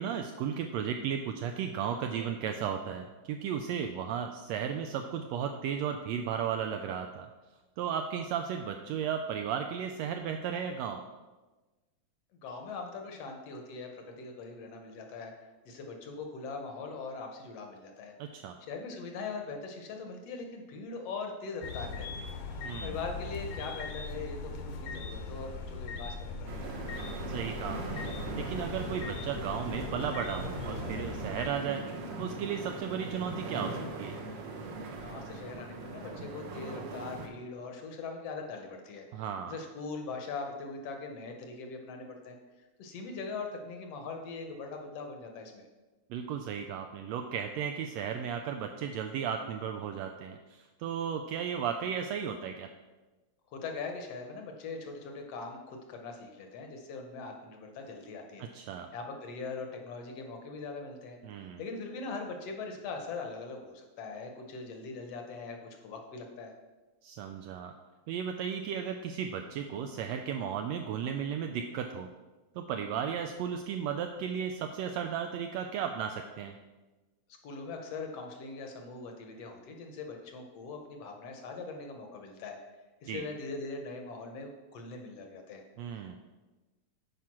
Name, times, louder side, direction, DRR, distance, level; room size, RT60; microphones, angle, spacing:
voice 1, 0.0-7.3 7.8-11.0 18.2-18.6 22.6-23.0 27.3-28.0 28.3-31.9 32.2-34.2 39.1-39.6 46.1-52.7 58.4-58.9 61.2-61.6 67.0-67.7 68.1-72.1 72.5-76.5 83.1-83.2 85.8-86.2, right 8 dB, 80° right, 5 dB, 1.6 m, -35 dB
voice 2, 12.3-18.1 18.6-22.3 22.8-26.8 34.9-42.4 42.8-45.6 53.5-66.5 77.4-82.6 83.0-85.6 85.9-86.2, left 4 dB, 65° left, 4 dB, 1.7 m, -41 dB
sound 1, 21.6-31.5, left 4 dB, 85° left, 2.4 m, -40 dB
sound 2, 26.5-37.3, right 2 dB, 60° right, 1.7 m, -40 dB
9.2 x 4.9 x 5.9 m, 1.2 s
omnidirectional pair, 3.4 m